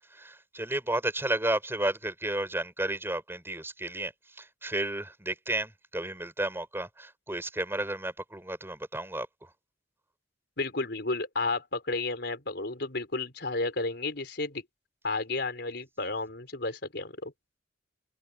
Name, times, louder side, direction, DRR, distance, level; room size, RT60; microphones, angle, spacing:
voice 1, 0.0-9.5, right 1 dB, 15° right, 6.1 m, -32 dB
voice 2, 10.6-14.6 15.0-17.3, left 3 dB, 65° left, 5.3 m, -32 dB
head